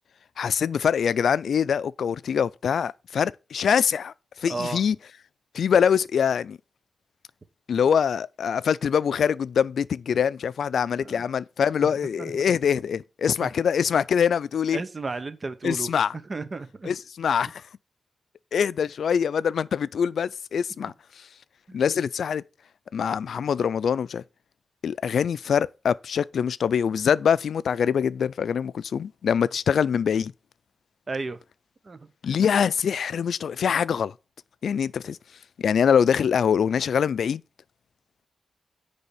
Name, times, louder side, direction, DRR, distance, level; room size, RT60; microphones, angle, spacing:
voice 1, 0.4-4.1 4.4-5.0 5.5-6.6 7.7-14.8 15.6-16.1 16.8-17.6 18.5-20.9 21.7-22.4 22.9-24.2 24.8-30.3 32.2-34.1 34.6-35.2 35.6-37.4, left 7 dB, 85° left, 0.3 m, -24 dB
voice 2, 4.5-4.8 11.0-11.2 11.8-11.9 12.2-12.3 13.4-13.5 14.7-15.9 16.3-16.9 21.7-21.8 31.1-31.4 31.8-32.0, right 3 dB, 35° right, 0.8 m, -33 dB
9.6 x 3.4 x 6.9 m
wide cardioid pair, 150°, 0 cm